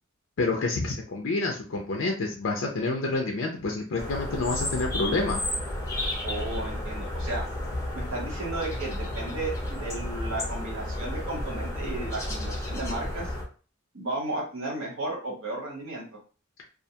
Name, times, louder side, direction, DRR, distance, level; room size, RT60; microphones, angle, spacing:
voice 1, 0.4-5.4, left 3 dB, 60° left, 1 dB, 0.4 m, -28 dB
sound 1, 4.0-13.4, left 1 dB, 15° left, 0.6 m, -32 dB
voice 2, 6.2-7.5 7.9-13.3 13.9-16.0, right 2 dB, 65° right, -2 dB, 0.8 m, -34 dB
2.4 x 2.2 x 2.7 m, 0.37 s
head